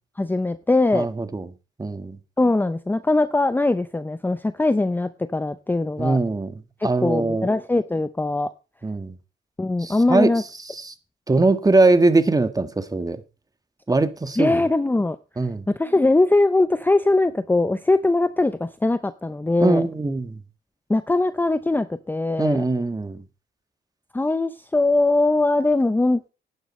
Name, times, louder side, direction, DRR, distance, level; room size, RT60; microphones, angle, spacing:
voice 1, 0.2-1.1 2.4-6.2 6.8-8.5 9.6-10.4 14.4-15.2 15.7-19.8 20.9-22.6 24.1-26.3, left 2 dB, 10° left, 0.6 m, -21 dB
voice 2, 0.9-1.5 1.8-2.2 6.0-6.5 6.8-7.5 8.8-9.1 9.8-10.4 10.7-10.9 11.3-13.2 13.9-14.6 15.4-15.6 19.6-20.4 22.4-23.2, right 2 dB, 20° right, 1.5 m, -21 dB
11.5 x 10.5 x 4.3 m
cardioid pair, 90°, 20 cm